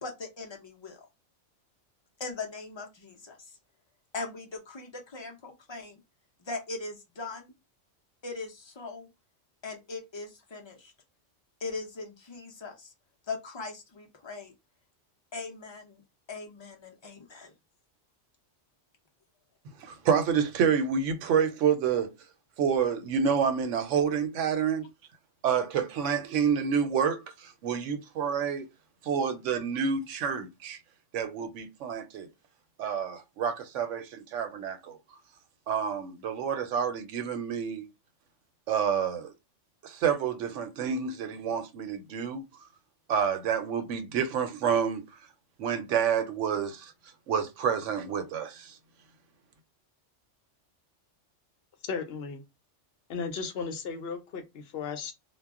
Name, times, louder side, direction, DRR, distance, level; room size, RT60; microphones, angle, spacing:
voice 1, 0.0-1.0 2.2-3.4 4.1-6.0 6.4-7.5 8.2-9.1 9.6-10.9 11.6-12.9 13.3-14.5 15.3-16.0 16.3-17.5, left 3 dB, 35° left, 0.4 m, -40 dB
voice 2, 19.8-22.1 22.6-24.9 25.4-28.7 29.0-30.8 31.1-32.3 32.8-35.0 35.7-37.9 38.7-39.3 39.8-42.4 43.1-45.0 45.6-46.9 47.3-48.8, right 7 dB, 85° right, 1.0 m, -28 dB
voice 3, 51.9-52.4 53.1-55.1, left 5 dB, 65° left, 0.8 m, -35 dB
2.3 x 2.0 x 3.5 m
omnidirectional pair, 1.2 m